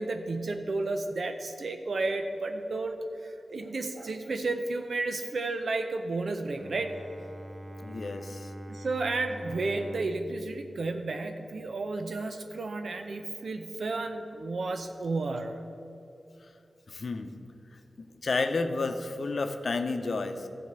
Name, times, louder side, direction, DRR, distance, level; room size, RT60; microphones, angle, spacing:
voice 1, 0.0-3.0 3.2-6.9 8.7-15.6, right 3 dB, 75° right, 6 dB, 0.6 m, -32 dB
Bowed string instrument, 6.5-11.8, right 1 dB, 35° right, 0.7 m, -44 dB
voice 2, 7.8-8.5 16.9-17.3 18.0-20.5, left 3 dB, 65° left, 7 dB, 0.7 m, -31 dB
12.5 x 4.4 x 8.0 m, 2.7 s
cardioid pair, 55°, 0 cm